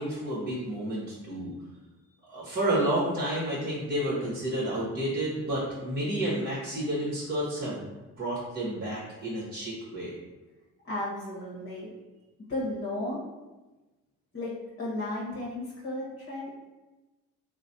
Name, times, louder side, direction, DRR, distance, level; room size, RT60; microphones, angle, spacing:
voice 1, 0.0-1.5 2.3-7.8 8.2-10.1, right 1 dB, 25° right, -6 dB, 1.2 m, -30 dB
voice 2, 10.8-11.9 12.4-13.3 14.3-16.5, left 1 dB, 40° left, -7 dB, 1.1 m, -34 dB
3.0 x 2.2 x 2.7 m, 1.1 s
hypercardioid pair, 55°, 36 cm